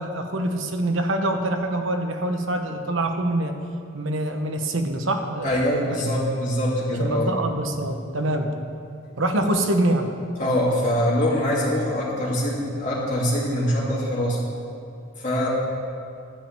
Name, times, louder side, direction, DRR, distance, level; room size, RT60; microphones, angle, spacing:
voice 1, 0.0-3.6 3.9-5.6 7.0-8.5 9.2-10.1, right 1 dB, 75° right, 5 dB, 1.0 m, -25 dB
voice 2, 5.4-7.3 10.4-14.4 15.2-15.5, equal, 35° left, -7 dB, 2.8 m, -23 dB
12.0 x 5.4 x 8.8 m, 2.5 s
head